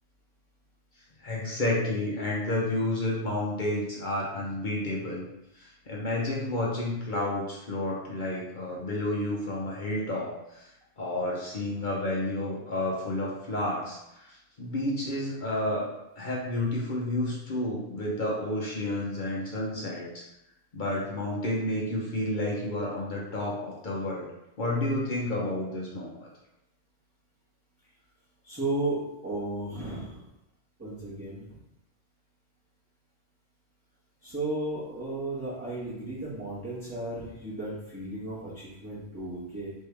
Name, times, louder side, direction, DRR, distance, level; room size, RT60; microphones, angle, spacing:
voice 1, 1.2-5.2 5.5-10.7 11.0-15.9 16.2-20.2 20.7-24.3 24.6-26.3, left 1 dB, 50° left, -4 dB, 1.0 m, -30 dB
voice 2, 28.4-30.3 30.8-31.5 34.2-39.7, right 2 dB, 15° right, -12 dB, 1.3 m, -34 dB
4.4 x 3.2 x 3.4 m, 0.87 s
omnidirectional pair, 1.1 m